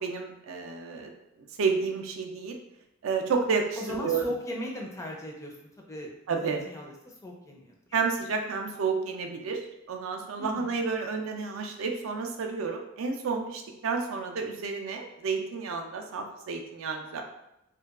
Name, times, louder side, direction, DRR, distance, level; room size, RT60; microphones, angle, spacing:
voice 1, 0.0-1.1 1.6-2.6 3.0-4.3 6.3-6.6 7.9-9.6 9.9-17.2, right 5 dB, 75° right, 3 dB, 0.4 m, -30 dB
voice 2, 3.8-6.1 6.4-7.7 10.4-10.7, equal, 15° left, -1 dB, 0.4 m, -38 dB
2.7 x 2.2 x 2.4 m, 0.84 s
head